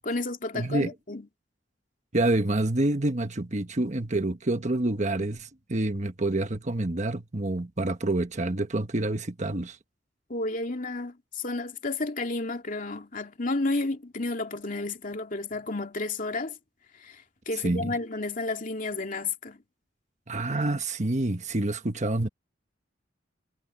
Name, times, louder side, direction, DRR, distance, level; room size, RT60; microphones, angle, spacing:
voice 1, 0.0-1.3 10.3-16.6 17.0-19.6, left 2 dB, 45° left, 2.5 m, -31 dB
voice 2, 0.5-0.9 2.1-9.8 17.6-17.9 20.3-22.3, right 2 dB, 40° right, 1.3 m, -27 dB
head